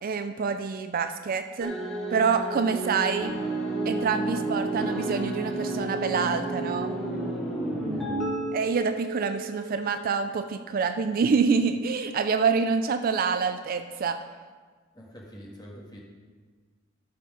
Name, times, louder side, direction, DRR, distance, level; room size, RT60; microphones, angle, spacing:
voice 1, 0.0-1.7 2.1-3.3 3.9-6.9 8.5-14.2, right 5 dB, 45° right, 8 dB, 0.4 m, -26 dB
sound 1, 1.6-10.0, right 2 dB, ahead, 1.9 m, -31 dB
voice 2, 7.7-8.1 14.9-16.0, equal, 20° left, -2 dB, 1.6 m, -45 dB
12.0 x 4.4 x 5.1 m, 1.5 s
head